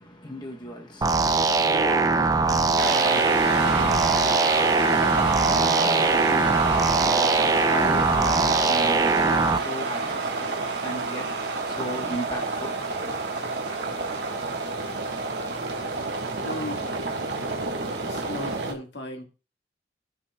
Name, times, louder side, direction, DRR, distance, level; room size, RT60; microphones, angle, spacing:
voice 1, 0.0-11.3 11.7-12.8, equal, 25° left, 0.8 m, -37 dB
sound 1, 1.0-9.6, right 3 dB, 20° right, 0.4 m, -21 dB
sound 2, 2.8-18.7, right 3 dB, 70° right, 1.4 m, -29 dB
voice 2, 16.4-17.0 17.9-19.3, left 1 dB, 75° left, 1.7 m, -36 dB
15.5 x 5.6 x 2.3 m
head